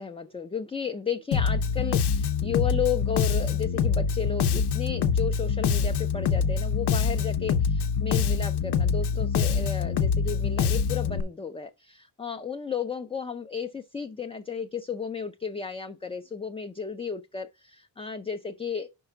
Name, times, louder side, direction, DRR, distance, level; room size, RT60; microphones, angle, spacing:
voice 1, 0.0-18.9, left 6 dB, 15° left, 0.4 m, -33 dB
Bass guitar, 1.3-11.2, left 6 dB, 85° left, 0.8 m, -25 dB
5.4 x 4.8 x 5.6 m
wide cardioid pair, 160°, 39 cm